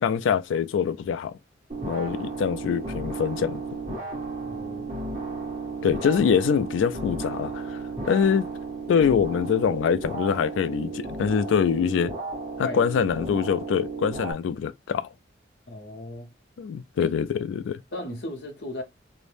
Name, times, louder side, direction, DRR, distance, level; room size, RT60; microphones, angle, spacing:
voice 1, 0.0-1.4 1.8-3.6 5.8-7.8 8.0-8.5 8.9-12.1 12.6-15.0 16.6-17.8, left 7 dB, 85° left, 0.3 m, -24 dB
sound 1, 1.7-14.3, right 3 dB, 45° right, 1.2 m, -34 dB
voice 2, 4.4-4.9 12.6-12.9 15.7-16.3 17.0-17.1 17.9-18.8, left 1 dB, 60° left, 0.7 m, -36 dB
2.6 x 2.0 x 3.2 m
head